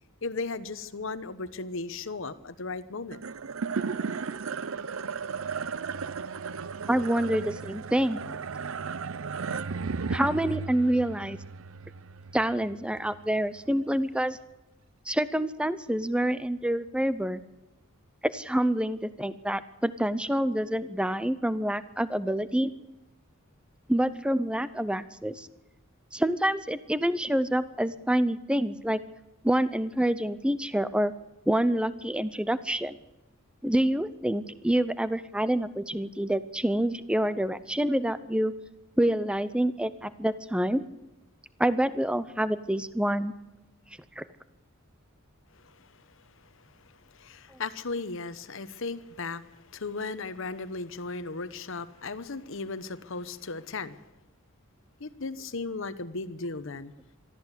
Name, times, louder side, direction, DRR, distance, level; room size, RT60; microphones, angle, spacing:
voice 1, 0.2-3.2 45.5-45.9 46.9-54.0 55.0-56.9, left 3 dB, 65° left, 13 dB, 1.0 m, -36 dB
sound 1, 3.1-13.6, right 5 dB, 70° right, 0.6 m, -35 dB
voice 2, 6.9-8.2 10.1-11.4 12.3-14.4 15.1-17.4 18.3-22.7 23.9-25.5 26.1-29.0 29.4-31.1 31.5-33.0 33.6-38.5 39.0-40.8 41.6-43.3 44.2-44.3, right 1 dB, 5° right, 14 dB, 0.7 m, -27 dB
23.0 x 14.0 x 8.2 m, 0.97 s
head